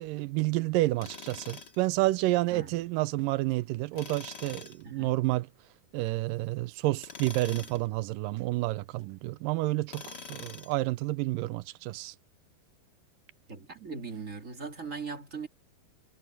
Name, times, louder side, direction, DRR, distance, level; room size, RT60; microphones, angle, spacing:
voice 1, 0.0-5.5 5.9-12.2, right 19 dB, 85° right, 1.9 m, -30 dB
Tools, 1.0-1.9 3.9-4.8 7.0-7.9 9.9-10.8, left 4 dB, 40° left, 1.7 m, -44 dB
voice 2, 4.8-5.1 13.5-15.5, right 5 dB, 30° right, 1.7 m, -39 dB
omnidirectional pair, 4.6 m